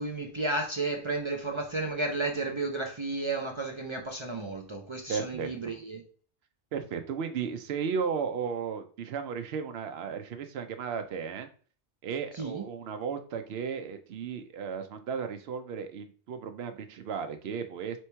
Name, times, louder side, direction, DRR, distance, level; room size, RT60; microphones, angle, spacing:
voice 1, 0.0-6.0 12.3-12.7, right 2 dB, 40° right, 0.5 m, -33 dB
voice 2, 5.1-5.5 6.7-11.5 12.0-18.0, right 6 dB, 80° right, 0.8 m, -34 dB
3.2 x 3.0 x 4.4 m
omnidirectional pair, 1.0 m